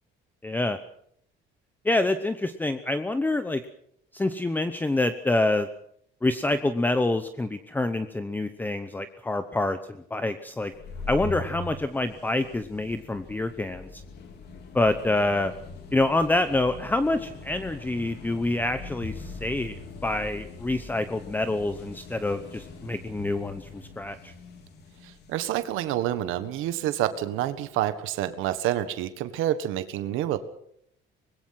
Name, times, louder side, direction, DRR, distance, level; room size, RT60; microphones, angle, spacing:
voice 1, 0.4-0.8 1.8-3.6 4.1-5.7 6.2-10.7 11.1-14.0 14.7-15.5 15.9-24.3, left 2 dB, 10° left, 10 dB, 0.8 m, -27 dB
sound 1, 10.6-28.0, left 3 dB, 55° left, 4.0 m, -42 dB
voice 2, 25.3-30.4, right 12 dB, 90° right, 11 dB, 1.6 m, -28 dB
24.5 x 20.5 x 5.9 m, 0.70 s
cardioid pair, 160°, 20 cm